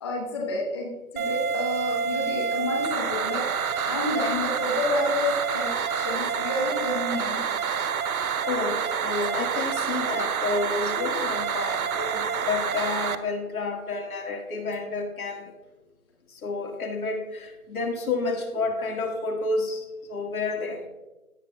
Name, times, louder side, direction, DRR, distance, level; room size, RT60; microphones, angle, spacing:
voice 1, 0.0-3.4 3.9-7.4, left 2 dB, 20° left, -2 dB, 0.8 m, -29 dB
sound 1, 1.2-13.2, right 7 dB, 80° right, 0.7 m, -28 dB
voice 2, 8.4-15.5 16.3-20.8, left 3 dB, 75° left, 3 dB, 1.8 m, -30 dB
16.0 x 5.5 x 2.2 m, 1.1 s
hypercardioid pair, 160°, 43 cm